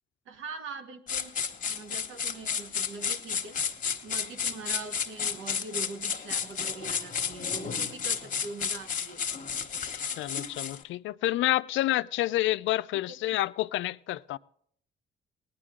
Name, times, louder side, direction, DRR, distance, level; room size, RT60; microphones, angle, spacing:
voice 1, 0.2-1.3 1.7-3.6 4.0-9.2 12.9-13.0, right 4 dB, 85° right, 1.4 m, -42 dB
sound 1, 1.1-10.8, left 7 dB, 40° left, 1.2 m, -32 dB
voice 2, 10.2-14.4, left 15 dB, 75° left, 0.4 m, -28 dB
18.5 x 10.0 x 3.7 m
cardioid pair, 90°, 20 cm